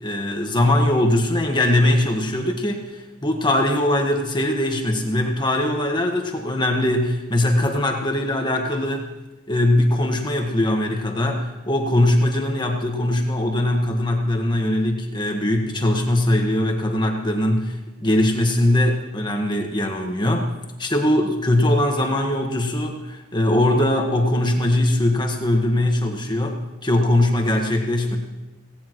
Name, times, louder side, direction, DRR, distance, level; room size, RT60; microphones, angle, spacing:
voice 1, 0.0-9.1 9.5-20.5 20.8-28.2, left 1 dB, 20° left, 3 dB, 1.5 m, -21 dB
17.5 x 17.0 x 3.1 m, 1.1 s
head